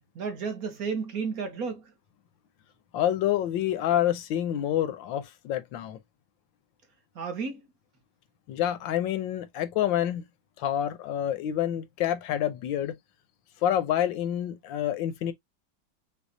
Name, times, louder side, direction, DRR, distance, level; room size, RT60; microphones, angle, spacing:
voice 1, 0.1-1.9 7.1-7.6, right 5 dB, 55° right, 1.4 m, -32 dB
voice 2, 2.9-6.0 8.5-10.2 10.6-12.9 13.6-15.3, left 11 dB, 90° left, 1.5 m, -27 dB
6.2 x 2.4 x 2.7 m
omnidirectional pair, 2.0 m